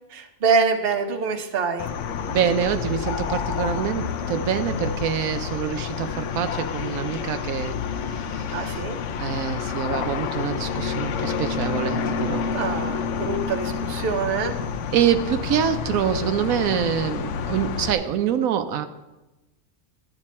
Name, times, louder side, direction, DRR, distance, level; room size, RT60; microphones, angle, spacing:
voice 1, 0.1-1.9 8.5-9.0 12.5-14.6, right 5 dB, 50° right, 5 dB, 1.0 m, -25 dB
sound 1, 1.8-17.9, left 6 dB, 65° left, 0.9 m, -29 dB
voice 2, 2.3-7.8 8.3-8.8 9.2-12.5 14.9-18.9, right 9 dB, 80° right, 8 dB, 1.0 m, -25 dB
12.0 x 9.0 x 4.2 m, 1.1 s
omnidirectional pair, 1.5 m